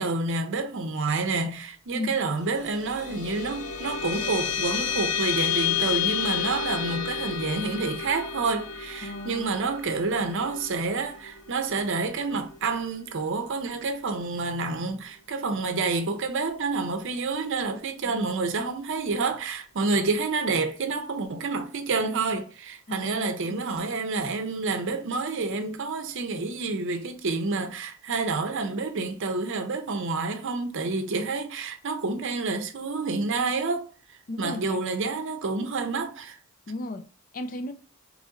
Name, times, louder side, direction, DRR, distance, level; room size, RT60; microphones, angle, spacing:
voice 1, 0.0-33.9 34.4-36.4, right 3 dB, 55° right, 0.6 m, -28 dB
sound 1, 2.3-13.1, left 8 dB, 65° left, 0.8 m, -31 dB
voice 2, 9.0-9.7 15.6-15.7 18.0-18.3 19.9-20.0 22.9-23.6 34.3-34.8 36.7-37.1 37.3-37.7, left 2 dB, 40° left, 0.4 m, -35 dB
4.0 x 3.1 x 3.7 m
head